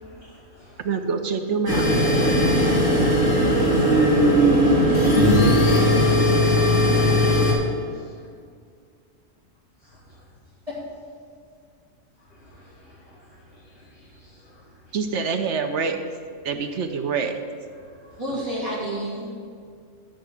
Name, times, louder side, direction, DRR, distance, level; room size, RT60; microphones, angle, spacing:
voice 1, 0.0-0.9 2.3-3.9 4.9-5.1 5.4-8.2 9.9-10.2 12.3-15.0 17.7-18.2, left 1 dB, 50° left, -4 dB, 1.6 m, -49 dB
voice 2, 0.8-1.9 14.9-16.0 16.4-17.3, right 5 dB, 70° right, 6 dB, 1.1 m, -25 dB
sound 1, 1.7-7.5, equal, 90° left, 2.5 m, -18 dB
voice 3, 18.2-19.3, right 1 dB, 30° right, -7 dB, 2.9 m, -29 dB
13.0 x 4.7 x 6.3 m, 2.1 s
omnidirectional pair, 1.3 m